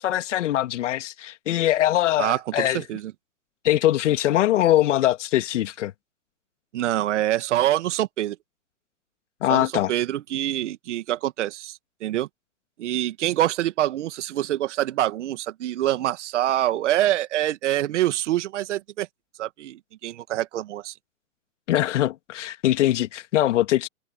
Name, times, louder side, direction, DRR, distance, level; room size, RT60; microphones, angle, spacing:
voice 1, 0.0-2.8 3.6-5.9 9.4-9.9 21.7-23.9, left 13 dB, 55° left, 2.0 m, -22 dB
voice 2, 2.2-3.1 6.7-8.4 9.5-12.3 12.8-19.1 19.4-20.9, right 13 dB, 55° right, 2.0 m, -25 dB
hypercardioid pair, 125°, 42 cm